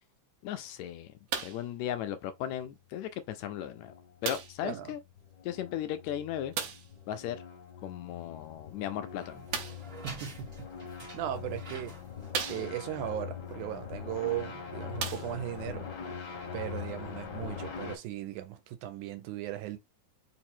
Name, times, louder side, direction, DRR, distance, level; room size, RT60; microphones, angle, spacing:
voice 1, 0.4-1.1 1.4-3.9 4.2-5.0 5.4-6.5 7.1-7.4 7.8-9.4, left 11 dB, 80° left, 1.7 m, -36 dB
sound 1, 1.3-1.7 2.6-2.7 4.2-4.7 6.5-7.0 9.5-9.9 10.9-11.0 11.6-11.7 12.3-13.0 14.3-14.4 14.9-15.7 16.5-16.6, right 7 dB, 70° right, 1.8 m, -36 dB
sound 2, 3.4-18.0, left 7 dB, 55° left, 1.2 m, -43 dB
sound 3, 8.1-13.5, right 3 dB, 50° right, 0.7 m, -50 dB
voice 2, 10.0-10.5 10.9-12.0 12.5-15.9 16.5-19.8, right 12 dB, 90° right, 2.2 m, -37 dB
4.8 x 2.0 x 4.3 m
omnidirectional pair, 3.4 m